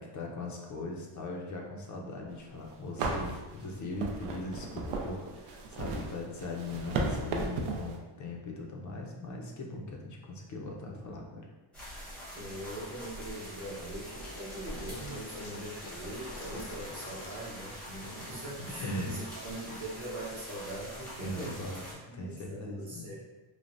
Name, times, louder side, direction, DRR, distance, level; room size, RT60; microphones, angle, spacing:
voice 1, 0.0-11.5 12.0-12.1 18.6-19.2 21.2-21.9 22.1-23.1, left 2 dB, 40° left, 0 dB, 0.4 m, -40 dB
sound 1, 2.4-2.5 3.0-8.0, right 3 dB, 85° right, 0.6 m, -35 dB
sound 2, 11.7-21.9, equal, ahead, 0.6 m, -44 dB
voice 2, 12.3-21.6 22.1-23.2, right 1 dB, 35° right, -8 dB, 0.7 m, -41 dB
sound 3, 14.1-19.5, left 3 dB, 85° left, 0.6 m, -49 dB
3.2 x 2.0 x 2.5 m, 1.2 s
cardioid pair, 140°, 49 cm